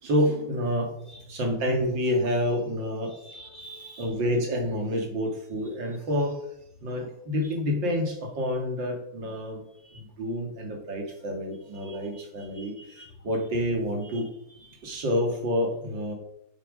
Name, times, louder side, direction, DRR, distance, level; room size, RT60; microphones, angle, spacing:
voice 1, 0.0-1.0 1.3-3.1 4.0-6.4 6.8-9.6 9.9-14.3 14.8-16.1, equal, 70° right, 2 dB, 2.8 m, -28 dB
voice 2, 3.1-4.1 9.8-10.0 11.8-12.2 12.5-13.1 14.0-14.2 14.5-15.0, right 2 dB, 60° left, 6 dB, 0.7 m, -48 dB
8.2 x 7.1 x 5.3 m, 0.77 s
omnidirectional pair, 2.1 m